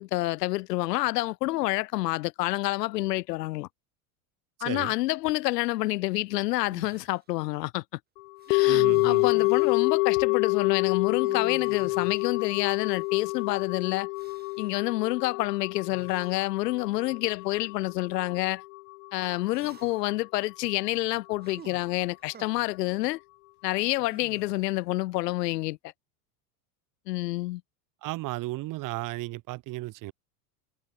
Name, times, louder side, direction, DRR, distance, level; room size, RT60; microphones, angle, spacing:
voice 1, 0.0-3.7 4.6-7.8 8.5-14.1 14.6-18.6 19.1-23.2 23.6-25.8 27.1-27.6, left 18 dB, 85° left, 2.0 m, -28 dB
voice 2, 4.6-4.9 8.7-9.3 28.0-30.1, right 19 dB, 40° right, 3.5 m, -34 dB
sound 1, 6.7-7.2 8.4-9.9 11.1-13.4 14.1-14.8 15.9-16.4 17.2-17.4 19.5-20.2 21.4-22.5 24.0-24.9, right 7 dB, 20° right, 3.2 m, -50 dB
sound 2, 8.5-18.8 19.0-19.1, left 28 dB, 60° left, 0.6 m, -27 dB
supercardioid pair, 155°, 47 cm